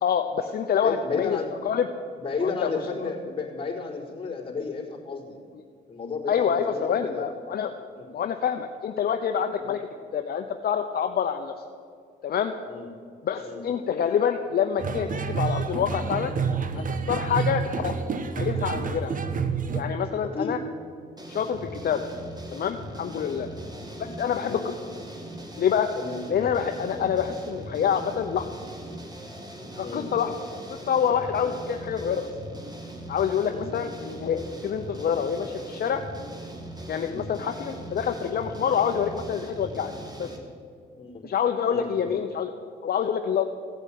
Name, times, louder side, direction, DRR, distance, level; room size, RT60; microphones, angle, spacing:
voice 1, 0.0-1.4 1.6-1.9 2.4-2.7 3.0-3.1 6.3-7.7 8.1-9.8 10.1-11.5 12.2-12.5 13.2-16.3 16.8-17.9 18.4-19.1 19.7-20.6 21.3-22.1 22.5-23.5 24.0-24.6 25.6-25.9 26.3-28.5 29.8-30.3 30.7-32.3 33.1-36.0 36.9-39.9 40.2-40.3 41.2-42.5 42.8-43.5, left 8 dB, 60° left, 6 dB, 0.9 m, -26 dB
voice 2, 0.8-1.5 2.2-5.4 5.9-7.3 8.0-8.1 9.6-9.7 12.6-12.9 13.4-13.7 20.2-20.6 23.2-23.4 24.0-24.1 24.4-24.7 25.9-26.2 26.9-27.1 29.8-30.1 33.5-33.7 37.0-37.2 38.9-39.0 41.0-41.2 41.7-42.2, left 4 dB, 30° left, -4 dB, 4.5 m, -33 dB
sound 1, 14.8-19.8, right 5 dB, 50° right, 1.3 m, -28 dB
sound 2, 21.2-40.4, right 1 dB, 20° right, 2.7 m, -40 dB
16.0 x 8.2 x 9.3 m, 2.2 s
cardioid pair, 80°, 18 cm